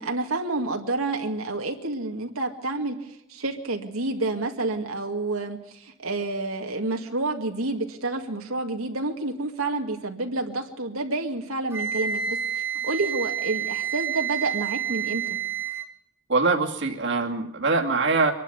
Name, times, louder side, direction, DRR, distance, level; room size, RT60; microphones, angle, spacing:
voice 1, 0.0-15.4, right 2 dB, 85° right, 3 dB, 2.3 m, -29 dB
Wind instrument woodwind instrument, 11.7-15.9, right 8 dB, 10° right, 1.9 m, -29 dB
voice 2, 16.3-18.3, right 3 dB, 60° right, 1 dB, 2.3 m, -23 dB
25.0 x 11.5 x 9.2 m, 0.84 s
head